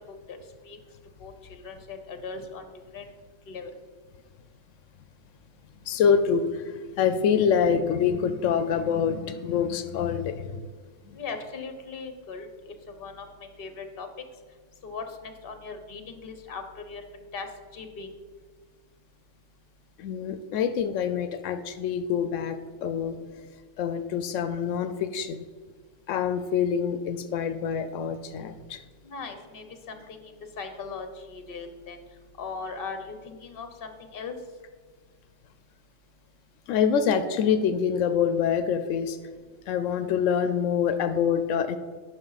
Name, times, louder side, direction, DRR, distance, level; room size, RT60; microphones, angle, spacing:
voice 1, 1.2-2.6 2.9-3.1 3.5-3.7 11.1-14.1 14.8-17.5 17.7-18.1 29.0-32.0 32.4-34.3, left 4 dB, 50° left, 7 dB, 1.1 m, -39 dB
voice 2, 5.9-10.6 11.1-11.2 20.0-23.2 23.8-25.5 26.1-28.8 36.7-39.2 39.7-41.8, left 7 dB, 90° left, 10 dB, 0.9 m, -26 dB
9.9 x 6.1 x 4.0 m, 1.5 s
omnidirectional pair, 1.3 m